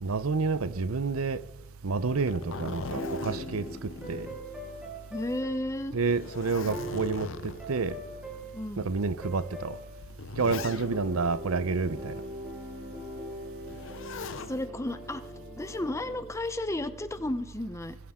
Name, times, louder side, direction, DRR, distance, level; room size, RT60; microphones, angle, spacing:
voice 1, 0.0-1.4 1.8-4.3 5.9-8.0 8.8-9.8 10.4-12.2, right 4 dB, 85° right, 0.7 m, -29 dB
sound 1, 1.9-16.2, equal, 5° right, 3.6 m, -42 dB
Zipper (clothing), 2.0-4.9 5.3-5.4 6.0-7.8 8.6-8.7 9.6-11.2 13.6-14.5 15.9-16.4, left 4 dB, 60° left, 0.7 m, -40 dB
voice 2, 5.1-6.0 8.5-8.9 14.5-18.0, left 1 dB, 15° left, 0.8 m, -33 dB
21.0 x 11.5 x 3.7 m
head